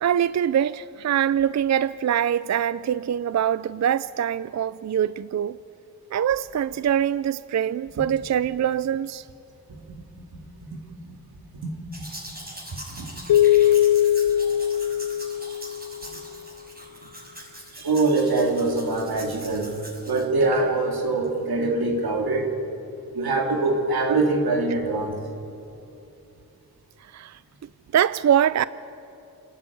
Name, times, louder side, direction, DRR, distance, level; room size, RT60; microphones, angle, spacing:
voice 1, 0.0-5.6 6.1-9.2 27.1-27.4 27.9-28.6, right 9 dB, 50° right, 0.4 m, -23 dB
voice 2, 9.7-10.0 11.0-11.2 11.6-11.7 12.7-13.1 15.4-15.6 16.1-16.2 17.7-19.8 20.1-22.5 23.1-25.2, right 3 dB, 85° right, 2.7 m, -24 dB
Domestic sounds home sounds, 11.9-20.6 21.2-21.3, right 1 dB, 25° right, 6.1 m, -42 dB
sound 1, 13.3-15.9, left 11 dB, 85° left, 0.6 m, -20 dB
28.5 x 10.0 x 9.2 m
cardioid pair, 55°, 36 cm